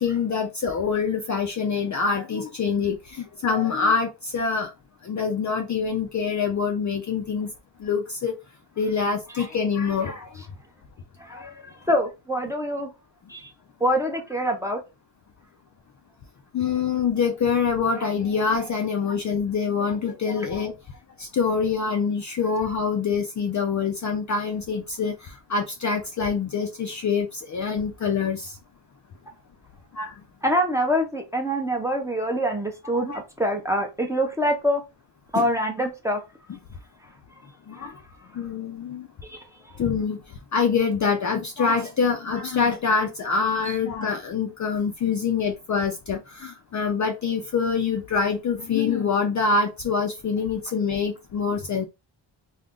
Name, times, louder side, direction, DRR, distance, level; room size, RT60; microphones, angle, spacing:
voice 1, 0.0-4.7 5.0-7.5 7.8-8.3 8.8-10.3 11.3-11.5 16.5-20.7 21.2-28.5 29.9-30.1 32.9-33.2 35.3-35.5 37.7-37.9 38.3-39.1 39.8-40.2 40.5-51.9, left 5 dB, 40° left, 0.4 m, -25 dB
voice 2, 11.2-11.5 11.9-12.9 13.3-13.5 13.8-14.8 30.4-34.8 35.3-36.2 37.8-37.9 39.2-39.4, equal, 5° right, 0.6 m, -25 dB
2.4 x 2.2 x 3.6 m
wide cardioid pair, 125°, 46 cm